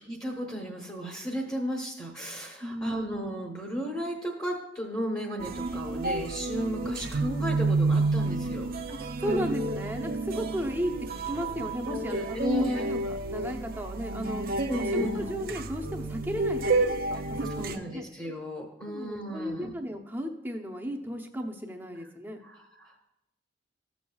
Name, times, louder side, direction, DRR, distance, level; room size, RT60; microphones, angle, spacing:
voice 1, 0.1-8.7 11.9-12.9 14.7-15.3 17.5-19.7 22.4-23.0, equal, 20° left, 0 dB, 1.0 m, -34 dB
voice 2, 2.6-2.9 8.9-10.9 11.3-12.2 12.5-14.4 14.8-18.0 18.9-22.4, equal, 10° right, 2 dB, 0.7 m, -35 dB
sound 1, 5.4-17.8, right 2 dB, 50° right, 0.5 m, -30 dB
14.5 x 7.0 x 2.3 m, 0.88 s
head